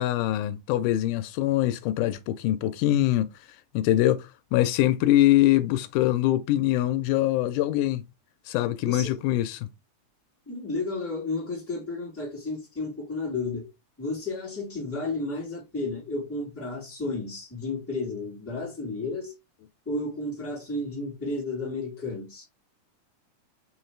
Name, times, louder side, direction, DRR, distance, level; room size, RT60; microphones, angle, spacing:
voice 1, 0.0-3.3 3.7-8.0 8.5-9.7, left 14 dB, 90° left, 2.1 m, -23 dB
voice 2, 8.8-9.1 10.4-13.7 14.0-19.3 19.8-22.4, left 3 dB, 5° left, 1.7 m, -32 dB
5.0 x 3.2 x 3.2 m
omnidirectional pair, 3.5 m